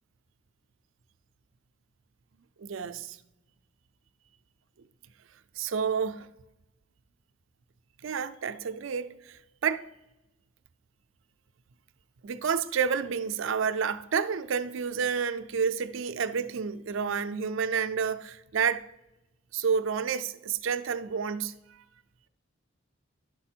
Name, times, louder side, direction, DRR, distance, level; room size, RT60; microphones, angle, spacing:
voice 1, 2.6-3.2 5.6-6.3 8.0-9.9 12.2-18.9 19.5-21.8, right 6 dB, 80° right, 0.5 m, -30 dB
11.5 x 4.9 x 4.4 m
head